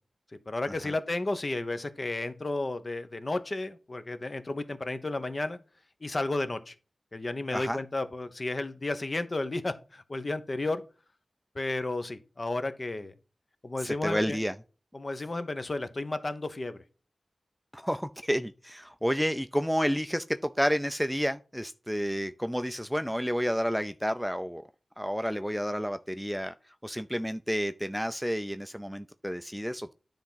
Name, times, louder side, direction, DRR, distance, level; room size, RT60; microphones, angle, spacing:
voice 1, 0.5-5.6 6.0-6.7 7.1-10.8 11.5-13.1 13.6-14.4 14.9-16.8, left 2 dB, 40° left, 0.9 m, -32 dB
voice 2, 13.8-14.5 17.7-24.6 25.0-26.5 26.8-29.9, equal, ahead, 0.4 m, -30 dB
10.0 x 3.5 x 5.6 m
wide cardioid pair, 90°, 0 cm